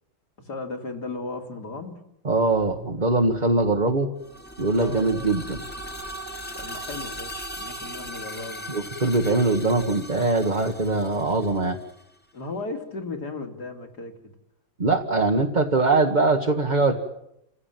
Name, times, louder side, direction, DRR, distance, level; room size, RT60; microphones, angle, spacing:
voice 1, 0.4-2.0 4.8-5.1 6.5-8.7 12.3-14.3, left 3 dB, 55° left, 4 dB, 3.2 m, -35 dB
voice 2, 2.2-4.1 4.6-5.6 8.7-11.8 14.8-17.0, right 3 dB, 25° right, 2 dB, 1.5 m, -22 dB
sound 1, 4.2-12.0, equal, 5° left, 1.8 m, -38 dB
29.5 x 16.0 x 9.2 m, 0.82 s
omnidirectional pair, 2.2 m